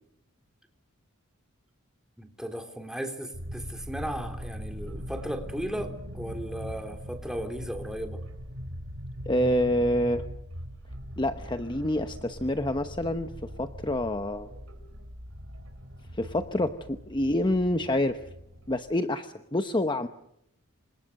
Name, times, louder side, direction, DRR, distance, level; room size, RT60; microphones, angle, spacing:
voice 1, 2.2-8.2, equal, 5° right, 5 dB, 3.4 m, -36 dB
sound 1, 3.3-18.8, equal, 75° right, 5.7 m, -41 dB
voice 2, 9.3-10.2 11.2-14.5 16.1-18.2 18.7-20.1, left 1 dB, 20° left, 8 dB, 1.0 m, -27 dB
28.5 x 26.0 x 6.6 m, 0.79 s
head